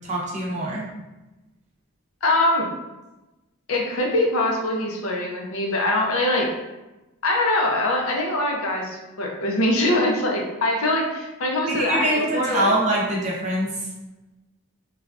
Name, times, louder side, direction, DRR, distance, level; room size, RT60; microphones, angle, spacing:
voice 1, 0.0-0.9 11.7-13.8, right 1 dB, 30° right, -4 dB, 0.6 m, -24 dB
voice 2, 2.2-2.7 3.7-6.5 7.2-12.7, left 1 dB, 65° left, 0 dB, 0.5 m, -23 dB
3.2 x 2.3 x 2.4 m, 1.0 s
head